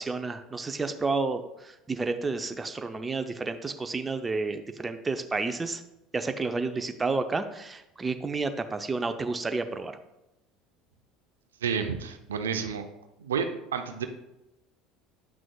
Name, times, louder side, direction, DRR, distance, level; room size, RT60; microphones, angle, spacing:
voice 1, 0.0-5.8 6.1-10.0, right 3 dB, 20° right, 8 dB, 0.6 m, -31 dB
voice 2, 11.6-12.9 13.2-14.1, right 6 dB, 85° right, 7 dB, 0.5 m, -30 dB
9.3 x 6.0 x 2.3 m, 0.91 s
hypercardioid pair, 70°, 0 cm